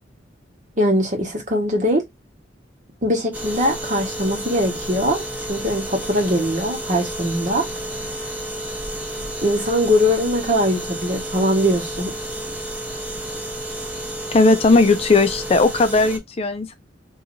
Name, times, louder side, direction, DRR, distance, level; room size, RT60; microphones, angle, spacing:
voice 1, 0.8-2.0 3.0-7.6 9.4-12.1, equal, 45° right, 1.4 m, -21 dB
sound 1, 3.3-16.2, right 1 dB, 10° right, 0.8 m, -31 dB
voice 2, 14.3-16.8, left 3 dB, 35° left, 0.4 m, -17 dB
2.9 x 2.7 x 3.8 m
head